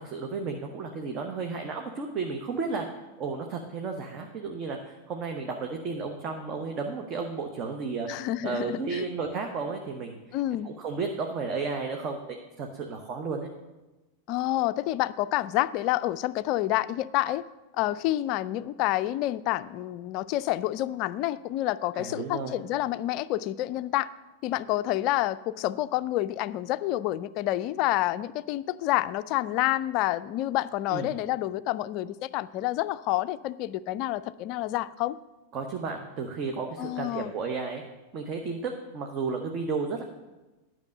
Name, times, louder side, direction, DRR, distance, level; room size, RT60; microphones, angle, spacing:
voice 1, 0.0-2.9 3.2-10.2 10.6-13.5 21.9-22.6 30.9-31.1 35.5-37.8 38.1-40.0, right 4 dB, 35° right, 3 dB, 0.9 m, -33 dB
voice 2, 8.1-9.1 10.3-10.7 14.3-17.4 17.7-24.1 24.4-35.2 36.8-37.3, left 15 dB, 40° left, 16 dB, 0.3 m, -28 dB
10.5 x 6.1 x 6.4 m, 1.1 s
figure-of-eight pair, 90°, 0 cm